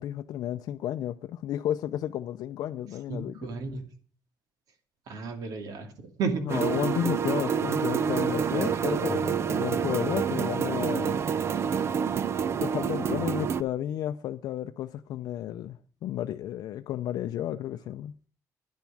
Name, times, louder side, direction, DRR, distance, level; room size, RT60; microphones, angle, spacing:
voice 1, 0.0-3.3 6.5-11.2 12.6-18.1, left 11 dB, 80° left, 0.5 m, -32 dB
voice 2, 3.1-3.8 5.1-6.9 8.5-9.1, right 4 dB, 70° right, 2.5 m, -34 dB
sound 1, 6.5-13.6, right 7 dB, 40° right, 0.6 m, -28 dB
10.5 x 10.5 x 6.2 m
cardioid pair, 165°, 7 cm